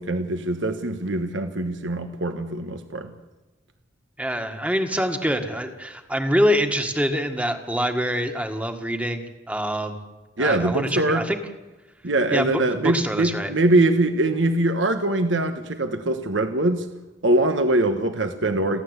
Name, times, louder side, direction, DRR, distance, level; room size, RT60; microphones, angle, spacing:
voice 1, 0.0-3.1 10.4-11.2 12.0-16.9 17.2-18.8, right 2 dB, 75° right, 7 dB, 1.3 m, -22 dB
voice 2, 4.2-10.0 10.4-11.4 12.3-13.5, equal, 5° right, 6 dB, 1.7 m, -25 dB
30.0 x 12.0 x 8.2 m, 1.1 s
head